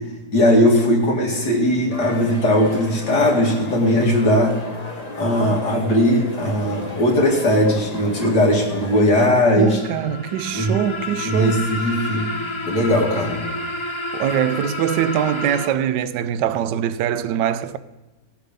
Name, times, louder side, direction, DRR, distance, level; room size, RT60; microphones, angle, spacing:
voice 1, 0.3-4.5 5.2-9.8 10.5-10.8 11.2-12.3 12.7-13.4, left 1 dB, 80° left, 3.0 m, -18 dB
sound 1, 1.9-9.0, left 2 dB, 25° left, 1.2 m, -35 dB
sound 2, 9.3-15.7, left 2 dB, 45° left, 0.4 m, -30 dB
voice 2, 9.5-11.7 14.1-17.8, right 10 dB, 85° right, 1.2 m, -23 dB
17.0 x 7.4 x 5.4 m
omnidirectional pair, 1.8 m